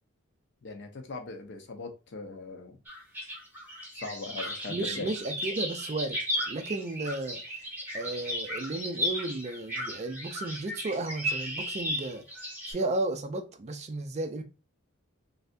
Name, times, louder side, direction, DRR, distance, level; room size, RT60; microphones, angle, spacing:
voice 1, 0.6-2.7 3.9-5.1, left 3 dB, 55° left, 0.6 m, -40 dB
sound 1, 2.9-12.7, equal, 10° right, 0.8 m, -35 dB
voice 2, 4.4-6.2 6.5-7.4 7.9-14.4, right 2 dB, 30° right, 0.4 m, -34 dB
3.3 x 2.7 x 2.5 m
head